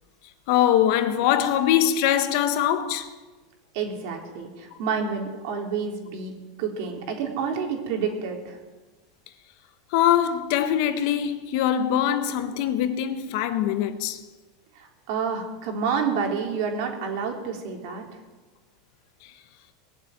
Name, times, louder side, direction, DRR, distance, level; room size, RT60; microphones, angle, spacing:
voice 1, 0.5-3.1 9.9-14.2, left 10 dB, 55° left, 1.3 m, -22 dB
voice 2, 3.7-6.3 6.6-8.6 14.8-18.0, right 6 dB, 60° right, 3.7 m, -29 dB
20.0 x 7.4 x 9.2 m
supercardioid pair, 145°, 2 cm